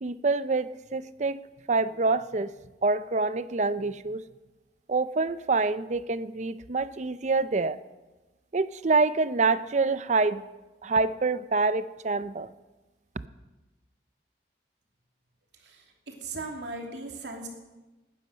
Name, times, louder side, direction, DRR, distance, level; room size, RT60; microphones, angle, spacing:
voice 1, 0.0-1.4 1.7-2.5 2.8-4.2 4.9-7.8 8.5-10.4 10.8-12.5, right 3 dB, 40° right, 15 dB, 0.5 m, -26 dB
voice 2, 16.2-17.5, right 3 dB, 85° right, 1 dB, 3.0 m, -37 dB
19.0 x 9.9 x 6.4 m, 1.1 s
head